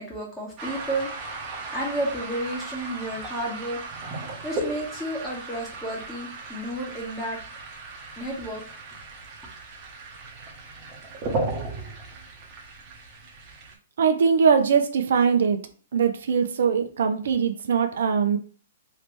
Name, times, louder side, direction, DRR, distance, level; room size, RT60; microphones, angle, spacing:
voice 1, 0.0-3.8 4.4-7.4 8.2-8.6, right 1 dB, 10° left, -4 dB, 1.5 m, -32 dB
sound 1, 0.6-13.7, right 3 dB, 30° right, 1.0 m, -36 dB
voice 2, 14.0-15.6 15.9-18.4, right 6 dB, 70° right, 7 dB, 0.5 m, -21 dB
3.1 x 2.9 x 3.3 m, 0.39 s
hypercardioid pair, 145°, 0 cm